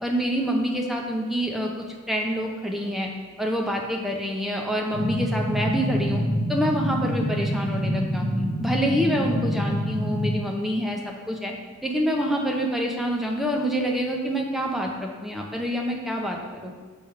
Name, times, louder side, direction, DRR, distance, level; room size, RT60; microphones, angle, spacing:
voice 1, 0.0-3.1 3.4-6.2 6.5-11.0 11.3-11.5 11.8-16.7, equal, ahead, 0 dB, 0.7 m, -26 dB
sound 1, 4.9-10.3, equal, 45° right, 1.5 m, -26 dB
7.2 x 3.4 x 5.7 m, 1.5 s
head